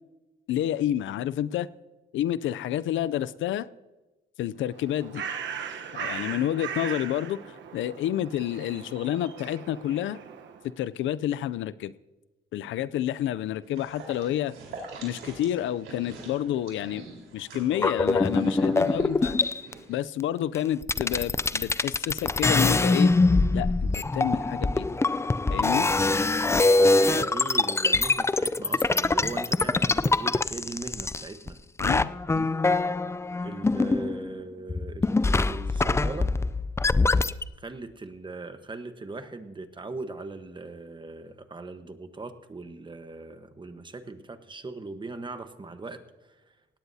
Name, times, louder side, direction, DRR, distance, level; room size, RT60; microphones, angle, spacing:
voice 1, 0.5-1.7 2.1-3.7 4.4-5.2 5.9-10.2 10.8-11.9 12.5-14.5 15.0-17.1 17.3-19.4 19.9-23.1 23.5-24.9 25.5-25.9 31.8-32.5, left 12 dB, 75° left, 17 dB, 0.5 m, -29 dB
Bird, 4.6-10.7, right 7 dB, 65° right, 1.1 m, -38 dB
sound 1, 13.6-20.0, right 3 dB, 85° right, 4.2 m, -45 dB
sound 2, 17.7-19.7 20.5-20.6 20.8-31.5 31.8-34.4 34.7-37.4, left 3 dB, 15° left, 0.4 m, -24 dB
voice 2, 27.0-31.6 33.4-36.3 37.6-46.6, right 3 dB, 25° right, 9 dB, 1.2 m, -39 dB
17.5 x 17.5 x 2.8 m, 1.1 s
cardioid pair, 90°, 20 cm